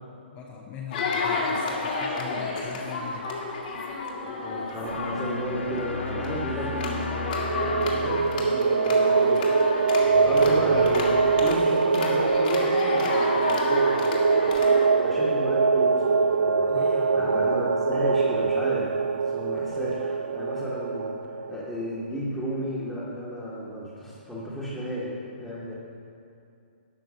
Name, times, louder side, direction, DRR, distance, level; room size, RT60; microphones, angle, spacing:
voice 1, 0.1-3.4 16.6-17.4, left 7 dB, 25° left, -2 dB, 0.8 m, -42 dB
sound 1, 0.9-14.9, left 3 dB, 50° left, 1.8 m, -31 dB
voice 2, 4.2-19.0 19.3-25.1 25.4-25.7, equal, ahead, -10 dB, 1.5 m, -34 dB
sound 2, 4.8-11.6, left 4 dB, 80° left, 1.0 m, -36 dB
sound 3, 7.3-21.6, right 4 dB, 80° right, 0.4 m, -23 dB
11.5 x 4.6 x 6.4 m, 2.5 s
hypercardioid pair, 135°, 6 cm